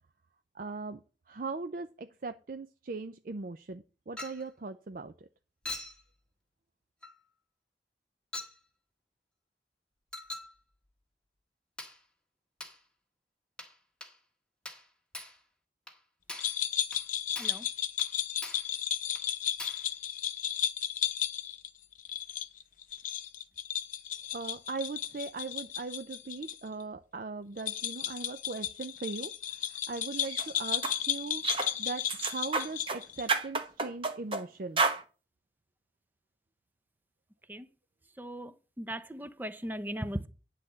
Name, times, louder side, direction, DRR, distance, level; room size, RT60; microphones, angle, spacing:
voice 1, 0.5-1.0 1.3-5.3 24.3-34.8, right 3 dB, 50° right, 0.5 m, -39 dB
Chink clink, 4.2-4.5 5.6-6.0 7.0-7.2 8.3-8.6 10.1-10.5 11.8-12.0 12.6-12.8 13.6-13.8 14.0-14.2 14.6-14.9 15.1-15.4 15.9-16.0 16.3-16.6 16.9-17.1 17.3-17.6 18.0-18.1 18.4-18.7 19.1-19.3 19.6-19.9, left 2 dB, 5° left, 1.6 m, -42 dB
sound 1, 16.4-26.6 26.8-26.9 27.6-33.3, left 10 dB, 50° left, 0.8 m, -34 dB
sound 2, 30.2-30.4 30.8-31.0 31.4-31.7 32.1-33.0 33.3-34.4 34.8-35.0, right 4 dB, 30° right, 1.1 m, -30 dB
voice 2, 38.2-38.5 38.8-40.3, right 1 dB, 10° right, 0.6 m, -37 dB
10.0 x 4.2 x 7.4 m
head